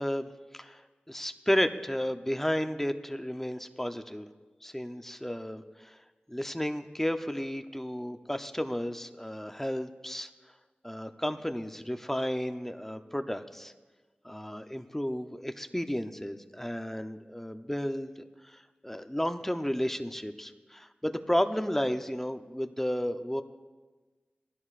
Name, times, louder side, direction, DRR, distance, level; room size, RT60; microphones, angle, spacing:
voice 1, 0.0-4.3 4.6-6.0 6.3-10.3 10.8-13.7 14.2-18.1 18.4-23.4, equal, 10° left, 7 dB, 0.7 m, -33 dB
22.5 x 16.0 x 2.5 m, 1.3 s
wide cardioid pair, 70°, 3 cm